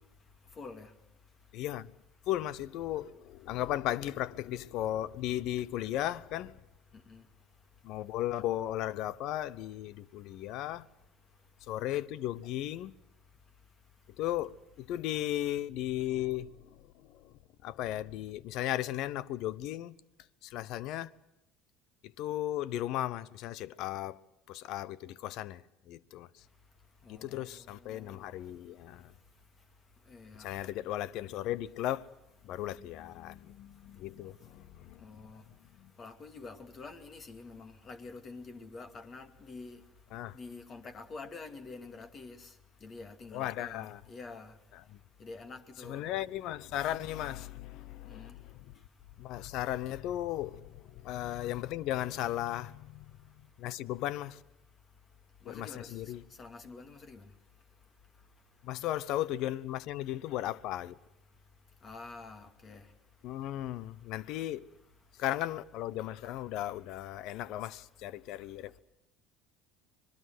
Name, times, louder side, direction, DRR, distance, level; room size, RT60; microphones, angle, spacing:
voice 1, 0.6-0.9 7.1-7.2 27.1-27.4 27.8-28.2 30.1-30.5 35.0-35.4 36.0-39.8 40.3-42.5 42.8-44.5 45.2-46.0 48.1-48.3 55.5-55.9 56.4-57.2 61.8-62.8, left 3 dB, 40° left, 2.5 m, -47 dB
voice 2, 1.5-1.9 2.3-6.6 7.8-10.9 11.7-12.9 14.2-17.3 17.6-20.0 20.4-21.1 22.2-24.2 24.5-25.6 25.9-26.3 27.1-29.1 30.4-32.1 32.4-35.2 35.8-35.9 40.1-40.4 43.3-44.0 44.9-45.0 45.8-48.7 49.2-53.0 53.6-54.4 55.4-56.2 58.6-61.0 63.2-64.7 65.2-68.8, left 13 dB, 65° left, 0.8 m, -36 dB
25.5 x 20.5 x 7.9 m
hypercardioid pair, 75°, 0 cm